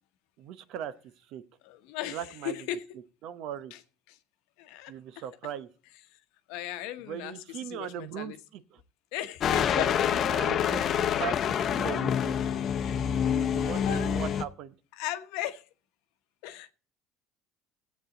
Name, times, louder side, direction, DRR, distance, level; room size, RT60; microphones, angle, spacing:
voice 1, 0.4-0.9 1.3-1.4 2.1-2.6 3.2-3.7 4.9-5.7 7.1-8.8 9.7-12.4 13.2-14.8, right 10 dB, 65° right, 0.8 m, -39 dB
voice 2, 1.6-2.8 3.7-3.8 4.1-4.2 4.6-5.2 6.5-8.4 9.1-10.1 12.2-12.3 13.8-14.1 14.9-15.6 16.4-16.7, left 12 dB, 80° left, 0.9 m, -37 dB
sound 1, 9.4-14.4, left 8 dB, 45° left, 0.7 m, -27 dB
13.5 x 8.3 x 3.9 m
supercardioid pair, 105°, 0 cm